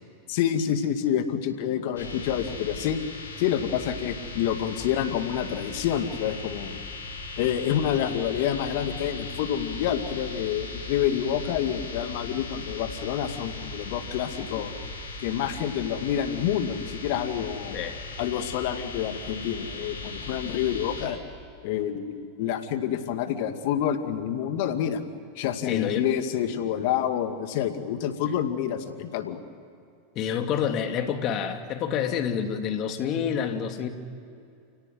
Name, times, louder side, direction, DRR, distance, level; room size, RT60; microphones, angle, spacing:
voice 1, 0.3-3.0 3.4-6.8 7.4-14.7 15.2-17.8 18.2-21.2 21.6-25.0 25.4-29.4, left 9 dB, 60° left, 7 dB, 2.3 m, -28 dB
sound 1, 2.0-21.1, left 3 dB, 80° left, 6.6 m, -38 dB
voice 2, 25.7-26.1 30.1-33.9, left 8 dB, 45° left, 6 dB, 2.7 m, -28 dB
29.5 x 18.0 x 9.3 m, 2.5 s
hypercardioid pair, 95°, 0 cm